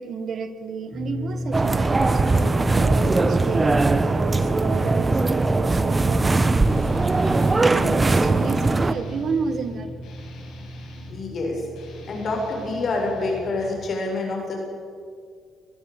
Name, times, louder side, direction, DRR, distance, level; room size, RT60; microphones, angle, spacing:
voice 1, 0.0-6.9 7.4-10.1, right 5 dB, 55° right, 10 dB, 1.9 m, -31 dB
sound 1, 0.9-13.7, equal, ahead, 3.5 m, -34 dB
sound 2, 1.5-8.9, right 3 dB, 25° right, 1.1 m, -20 dB
Guitar, 6.6-7.9 8.3-11.2 11.7-13.9, left 4 dB, 80° left, 6.1 m, -46 dB
voice 2, 11.1-11.6 12.1-14.5, left 2 dB, 55° left, 0 dB, 7.7 m, -27 dB
24.0 x 16.5 x 8.4 m, 2.2 s
cardioid pair, 90°, 0 cm